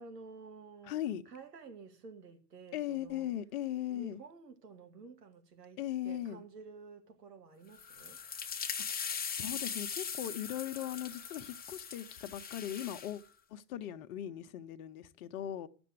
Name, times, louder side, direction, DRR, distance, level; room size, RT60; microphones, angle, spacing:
voice 1, 0.0-3.3 3.9-8.2, right 4 dB, 75° right, 2.2 m, -52 dB
voice 2, 0.8-1.2 2.7-4.2 5.8-6.4 9.0-13.2 13.5-15.7, left 11 dB, 60° left, 1.2 m, -39 dB
sound 1, 7.7-13.2, left 6 dB, 20° left, 1.2 m, -40 dB
12.5 x 7.1 x 8.0 m
figure-of-eight pair, 85°, 48 cm